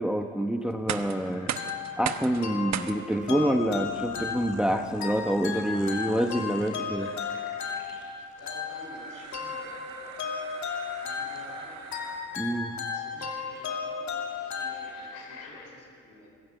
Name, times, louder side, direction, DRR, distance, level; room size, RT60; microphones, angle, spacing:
voice 1, 0.0-1.6 2.0-7.1 12.4-12.8, right 1 dB, 5° right, 5 dB, 1.0 m, -27 dB
sound 1, 0.7-15.7, left 4 dB, 85° left, 3.4 m, -50 dB
sound 2, 0.7-12.6, right 9 dB, 60° right, 1.2 m, -41 dB
sound 3, 1.6-15.4, left 6 dB, 70° left, 2.7 m, -35 dB
voice 2, 8.4-10.5 11.0-11.8 12.9-16.3, left 2 dB, 55° left, 0 dB, 7.2 m, -50 dB
24.5 x 16.0 x 8.1 m, 2.3 s
cardioid pair, 90°, 30 cm